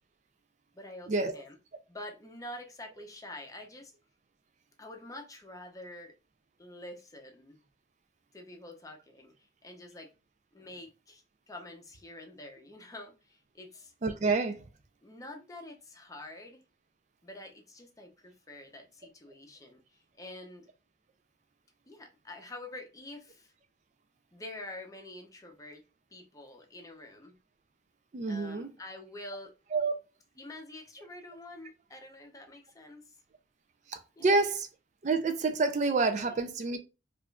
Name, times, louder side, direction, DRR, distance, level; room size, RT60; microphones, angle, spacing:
voice 1, 0.7-1.6 1.9-3.9 4.8-6.1 6.6-7.6 8.3-10.1 10.5-13.9 15.0-16.6 17.2-20.7 21.9-23.5 24.3-27.4 28.3-29.5 30.4-33.2 34.2-34.3 36.2-36.4, left 1 dB, 20° left, 0.7 m, -47 dB
voice 2, 14.0-14.6 28.1-28.7 29.7-29.9 33.9-34.7 35.0-36.8, right 3 dB, 45° right, 0.4 m, -28 dB
4.8 x 2.5 x 2.3 m
head